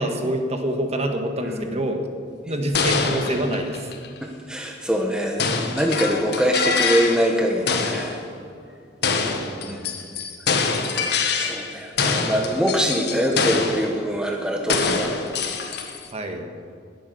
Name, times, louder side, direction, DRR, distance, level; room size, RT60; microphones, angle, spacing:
voice 1, 0.0-2.1 2.5-3.9 9.0-9.9 11.7-12.0 16.1-16.5, right 1 dB, 35° right, 5 dB, 1.5 m, -27 dB
voice 2, 1.4-1.8 4.2-8.2 9.7-9.9 11.3-15.1, equal, 5° right, 1 dB, 1.1 m, -24 dB
sound 1, 2.7-4.2 5.4-7.4 7.7-8.2 9.0-11.7 12.0-14.0 14.7-16.1, left 5 dB, 60° left, 1.4 m, -25 dB
20.0 x 8.6 x 6.8 m, 2.2 s
head